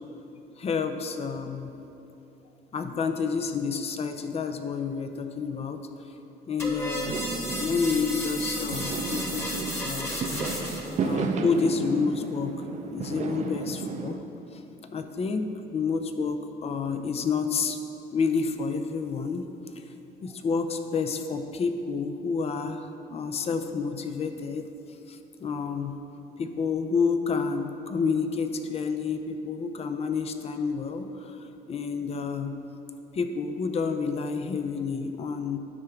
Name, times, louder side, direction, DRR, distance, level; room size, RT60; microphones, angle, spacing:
voice 1, 0.6-1.7 2.7-5.8 6.5-7.1 7.6-10.5 11.0-12.6 12.9-14.2 14.5-14.6 14.9-17.8 18.1-19.5 20.2-24.7 25.1-25.9 26.4-32.5 33.1-35.6, left 5 dB, 35° left, 7 dB, 0.6 m, -29 dB
sound 1, 6.6-11.0, equal, 15° left, 1.3 m, -33 dB
Fireworks, 7.0-14.1, right 4 dB, 45° right, 0.6 m, -33 dB
9.8 x 3.7 x 5.8 m, 2.9 s
cardioid pair, 110°, 17 cm